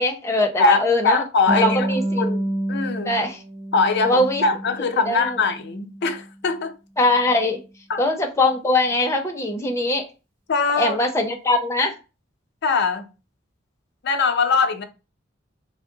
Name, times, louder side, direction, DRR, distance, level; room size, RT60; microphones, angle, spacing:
voice 1, 0.0-1.2 1.5-2.2 3.0-3.4 4.0-4.4 5.1-5.4 7.0-7.6 8.0-10.1 10.7-11.9, left 2 dB, 15° left, 0.6 m, -21 dB
voice 2, 0.6-1.9 2.2-3.1 3.7-6.7 7.9-8.0 10.5-11.0 12.6-13.1 14.0-14.8, left 4 dB, 60° left, 0.5 m, -22 dB
Harp, 1.5-4.9 5.2-6.3, right 1 dB, 90° right, 1.1 m, -28 dB
3.5 x 2.0 x 3.8 m
head